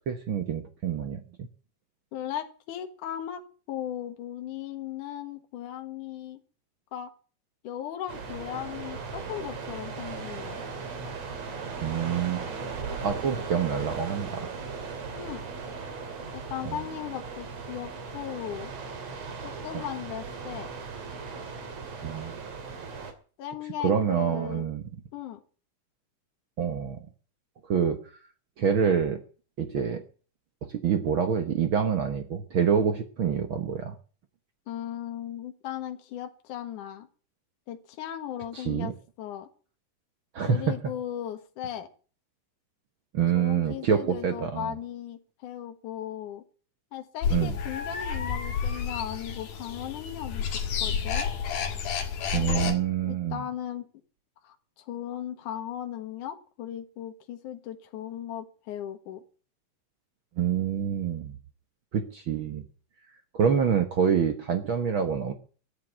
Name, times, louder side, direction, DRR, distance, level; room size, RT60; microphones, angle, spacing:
voice 1, 0.1-1.5 11.8-12.5 13.0-14.5 16.6-16.8 19.7-19.8 22.0-22.4 23.8-24.9 26.6-27.0 27.7-28.0 28.6-29.2 29.6-30.0 30.6-33.9 38.5-38.9 40.3-40.8 43.1-44.7 47.3-47.6 52.3-53.4 60.4-61.4 61.9-62.6 63.3-65.3, right 7 dB, 70° right, 7 dB, 1.2 m, -26 dB
voice 2, 2.1-3.4 3.7-6.4 6.9-7.1 7.6-10.6 15.1-15.4 16.3-18.7 19.4-20.7 23.4-24.7 25.1-25.4 34.7-37.1 37.7-39.5 40.5-41.9 43.3-46.4 46.9-50.4 50.8-51.3 53.0-53.9 54.4-59.2, left 10 dB, 65° left, 6 dB, 3.0 m, -37 dB
sound 1, 8.1-23.1, right 5 dB, 50° right, 3.3 m, -38 dB
sound 2, 47.2-52.8, left 7 dB, 90° left, 3.9 m, -30 dB
14.5 x 8.5 x 8.9 m, 0.40 s
omnidirectional pair, 4.1 m